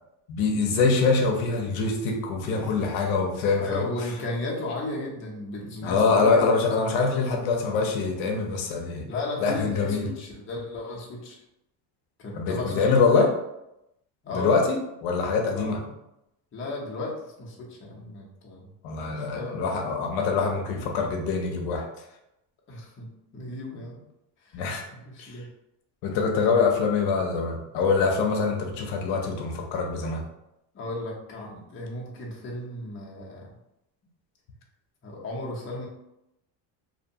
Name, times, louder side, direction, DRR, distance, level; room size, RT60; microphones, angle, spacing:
voice 1, 0.3-3.9 5.8-9.1 9.4-10.0 12.3-13.3 14.3-15.8 18.8-21.9 24.5-24.8 25.2-25.4 26.0-30.2, left 4 dB, 80° left, 2 dB, 0.7 m, -24 dB
voice 2, 2.5-2.9 3.6-7.5 9.1-11.4 12.2-13.1 14.2-14.6 15.5-16.0 16.5-18.7 19.2-19.6 22.7-24.0 24.4-24.6 24.9-25.5 29.0-29.2 30.7-33.5 35.0-35.9, left 2 dB, 25° left, -3 dB, 0.6 m, -35 dB
2.6 x 2.1 x 2.7 m, 0.86 s
cardioid pair, 125°, 48 cm